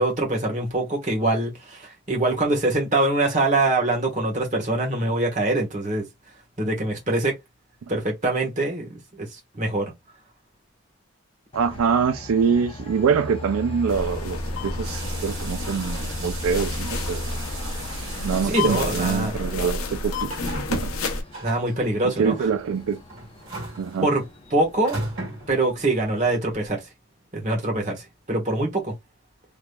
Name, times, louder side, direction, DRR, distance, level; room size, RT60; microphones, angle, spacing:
voice 1, 0.0-6.0 6.6-7.3 7.9-9.3 9.6-9.9 18.4-19.3 21.4-22.3 24.0-24.2 24.5-25.0 25.5-26.8 27.3-28.9, right 2 dB, 35° right, 1.2 m, -24 dB
Train, 11.5-26.7, left 2 dB, 25° left, 0.7 m, -39 dB
voice 2, 11.5-14.4 14.6-17.4 18.2-20.9 22.2-23.0 23.8-24.1, right 6 dB, 85° right, 0.4 m, -24 dB
sound 1, 13.9-21.2, left 3 dB, 85° left, 0.7 m, -30 dB
sound 2, 14.8-26.0, right 3 dB, 65° right, 2.0 m, -38 dB
3.4 x 3.0 x 2.2 m
head